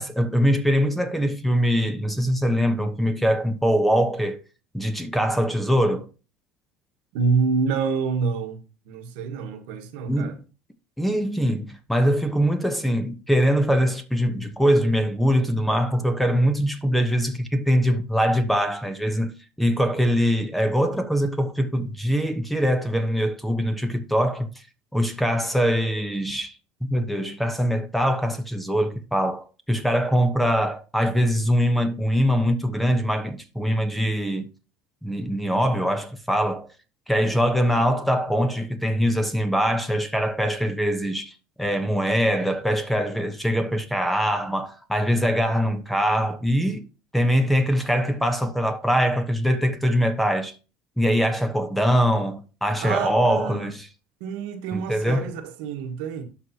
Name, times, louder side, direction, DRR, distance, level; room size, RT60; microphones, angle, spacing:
voice 1, 0.0-4.4 4.7-6.1 10.1-10.4 11.0-24.6 24.9-26.6 26.8-34.5 35.0-36.7 37.1-46.9 47.1-50.5 51.0-53.8 54.7-55.3, equal, ahead, 1.0 m, -23 dB
voice 2, 7.1-8.6 8.8-10.4 52.8-53.7 54.2-56.2, right 5 dB, 85° right, 1.4 m, -27 dB
11.5 x 4.8 x 2.9 m
cardioid pair, 125°, 5 cm